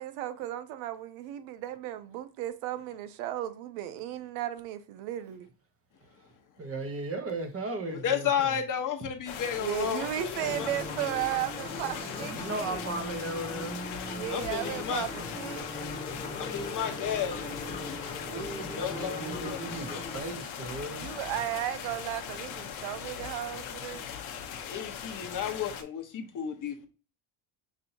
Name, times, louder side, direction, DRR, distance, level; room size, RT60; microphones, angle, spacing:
voice 1, 0.0-5.5 9.6-12.8 14.0-15.7 21.0-24.0, right 12 dB, 90° right, 0.7 m, -35 dB
voice 2, 6.6-8.6 12.2-13.8 18.2-21.1, right 2 dB, 30° right, 1.0 m, -37 dB
voice 3, 7.9-10.7 14.3-15.0 16.4-17.4 17.7-17.9 18.7-19.6 24.7-26.9, left 8 dB, 40° left, 1.0 m, -32 dB
sound 1, 9.3-25.8, left 8 dB, 75° left, 0.9 m, -39 dB
sound 2, 10.4-20.2, left 1 dB, 10° left, 1.2 m, -40 dB
6.1 x 2.7 x 2.7 m
cardioid pair, 110°, 48 cm